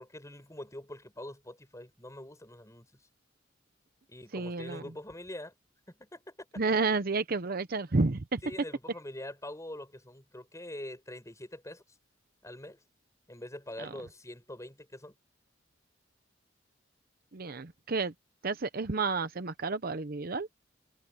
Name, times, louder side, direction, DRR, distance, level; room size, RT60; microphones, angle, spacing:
voice 1, 0.0-2.9 4.1-5.5 5.9-6.4 8.4-11.8 12.4-12.8 13.3-15.2, left 1 dB, 15° left, 7.7 m, -44 dB
voice 2, 4.3-4.8 6.6-8.4 13.8-13.9 17.3-18.1 18.4-20.5, right 3 dB, 50° right, 0.8 m, -30 dB
head